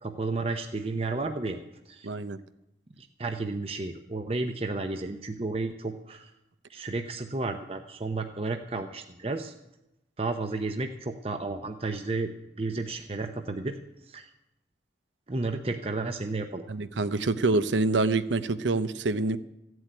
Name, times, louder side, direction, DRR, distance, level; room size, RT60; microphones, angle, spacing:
voice 1, 0.0-1.6 1.9-2.1 3.0-6.3 6.7-9.5 10.2-12.3 12.6-13.8 14.1-14.3 15.3-16.6, right 3 dB, 30° right, 6 dB, 0.7 m, -32 dB
voice 2, 2.0-2.4 16.7-19.4, right 3 dB, 85° right, 13 dB, 0.8 m, -26 dB
15.0 x 7.9 x 9.3 m, 0.90 s
head